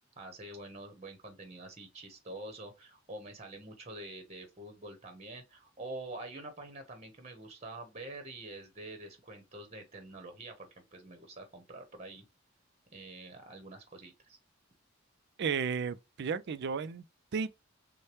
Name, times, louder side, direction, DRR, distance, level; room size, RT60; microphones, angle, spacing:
voice 1, 0.2-12.2 12.9-14.4, right 2 dB, 30° right, 1.0 m, -46 dB
voice 2, 15.4-17.0 17.3-17.7, right 6 dB, 55° right, 0.4 m, -33 dB
6.4 x 2.2 x 3.0 m
head